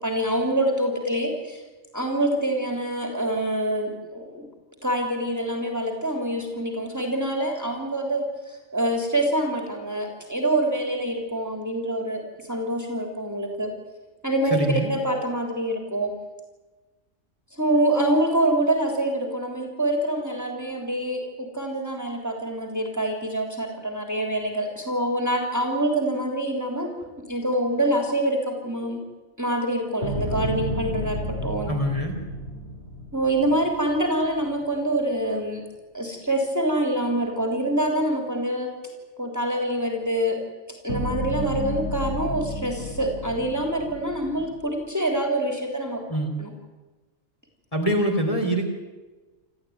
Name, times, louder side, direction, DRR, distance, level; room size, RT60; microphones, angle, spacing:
voice 1, 0.0-1.6 1.9-4.5 4.8-12.2 12.5-13.7 14.2-14.6 14.9-16.1 17.5-26.9 27.3-29.0 29.4-31.7 33.1-35.6 35.9-38.7 39.2-40.4 40.8-46.0 46.4-46.5, right 1 dB, 10° right, 2 dB, 3.4 m, -25 dB
voice 2, 14.5-14.9 31.7-32.1 46.1-46.3 47.7-48.7, right 1 dB, 25° left, 1 dB, 3.9 m, -24 dB
sound 1, 30.0-34.3 40.9-44.6, equal, 55° left, 8.5 m, -32 dB
28.0 x 14.0 x 9.5 m, 1.2 s
omnidirectional pair, 1.4 m